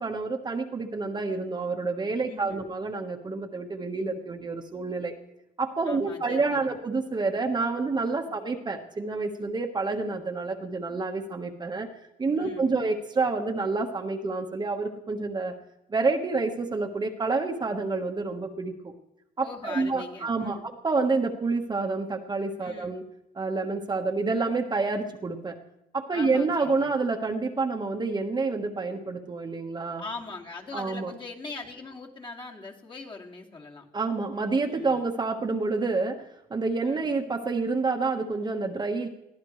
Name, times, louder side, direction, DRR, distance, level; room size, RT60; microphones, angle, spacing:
voice 1, 0.0-5.1 5.6-11.9 12.2-15.5 15.9-18.9 19.4-23.0 23.3-25.6 25.9-30.0 30.7-31.1 33.9-39.1, right 3 dB, 25° right, 2 dB, 1.4 m, -28 dB
voice 2, 2.2-2.7 5.9-6.8 8.3-8.4 12.4-12.9 19.4-20.7 22.6-22.9 26.1-26.9 30.0-33.9 34.6-35.0 36.8-37.2, left 3 dB, 30° left, 0 dB, 2.6 m, -41 dB
22.0 x 14.5 x 3.3 m, 0.85 s
cardioid pair, 110°, 17 cm